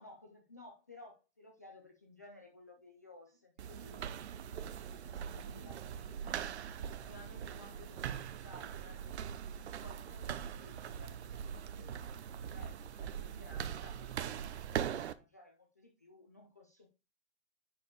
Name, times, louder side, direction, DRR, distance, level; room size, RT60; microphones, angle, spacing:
voice 1, 0.0-12.0 12.3-16.9, left 2 dB, 15° left, 0.3 m, -57 dB
sound 1, 3.6-15.1, right 9 dB, 75° right, 0.8 m, -41 dB
10.5 x 4.8 x 3.5 m
hypercardioid pair, 170°, 34 cm